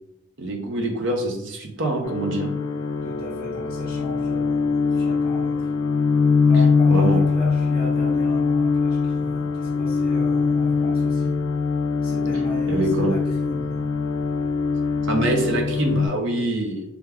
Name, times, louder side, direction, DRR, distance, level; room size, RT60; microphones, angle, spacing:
voice 1, 0.4-2.6 6.9-7.2 12.7-13.1 15.0-16.8, right 2 dB, 60° right, 2 dB, 0.7 m, -25 dB
sound 1, 2.0-16.1, left 4 dB, 80° left, 0.3 m, -22 dB
voice 2, 3.0-5.7 6.5-11.4 12.0-13.8 16.2-16.5, left 1 dB, 25° left, -7 dB, 0.5 m, -36 dB
3.4 x 2.3 x 3.4 m, 0.82 s
head